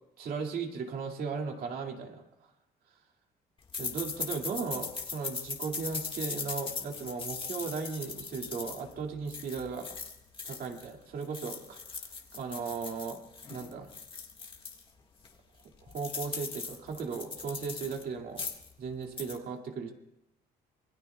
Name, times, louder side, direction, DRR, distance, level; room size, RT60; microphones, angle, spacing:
voice 1, 0.2-2.2 3.8-10.0 10.4-13.2 13.5-13.9 15.8-18.5 18.8-19.9, right 5 dB, 60° right, 3 dB, 2.4 m, -37 dB
sound 1, 3.7-10.9 11.2-14.8 15.2-15.3 15.6-18.0 18.3-18.7 19.0-19.4, left 5 dB, 30° left, 1.8 m, -39 dB
27.0 x 21.5 x 2.3 m, 0.90 s
cardioid pair, 110°, 17 cm